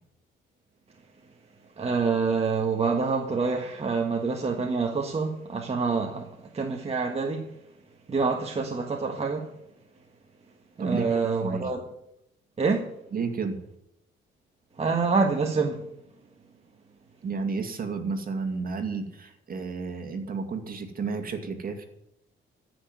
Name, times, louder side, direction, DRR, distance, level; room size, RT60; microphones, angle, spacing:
voice 1, 1.8-7.5 8.1-9.5 10.8-11.8 12.6-12.9 14.8-15.9, right 4 dB, 30° right, 1.5 m, -26 dB
voice 2, 10.8-11.7 13.1-13.6 17.2-21.8, right 4 dB, 45° right, 2.4 m, -31 dB
14.0 x 6.3 x 9.5 m
cardioid pair, 90°, 20 cm